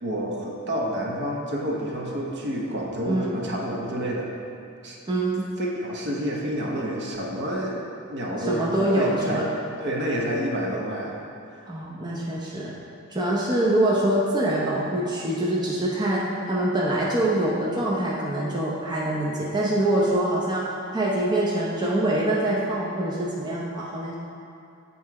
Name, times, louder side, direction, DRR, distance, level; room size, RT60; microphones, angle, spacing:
voice 1, 0.0-4.3 4.8-5.0 5.6-7.8 8.1-9.5 9.8-11.2 11.5-11.6, equal, 55° right, -2 dB, 1.0 m, -29 dB
voice 2, 3.1-3.4 5.1-5.5 8.5-9.5 11.7-12.7 13.1-20.6 20.9-24.1, right 1 dB, 20° right, -5 dB, 0.7 m, -24 dB
7.6 x 4.2 x 4.8 m, 2.5 s
head